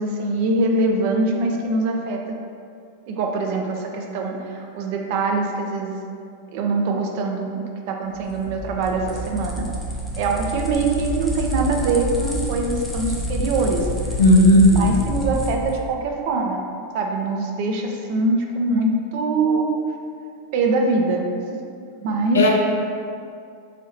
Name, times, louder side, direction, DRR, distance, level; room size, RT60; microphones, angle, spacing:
voice 1, 0.0-2.4 3.1-6.0 6.5-9.7 10.2-13.9 14.5-16.6 16.9-19.7 20.5-21.2 22.0-22.4, right 3 dB, 45° right, 2 dB, 0.4 m, -23 dB
sound 1, 8.2-15.8, equal, 5° left, 0.6 m, -28 dB
voice 2, 14.2-14.9 22.3-22.5, left 1 dB, 65° left, -1 dB, 0.6 m, -13 dB
3.3 x 2.7 x 4.0 m, 2.3 s
figure-of-eight pair, 90°, 0 cm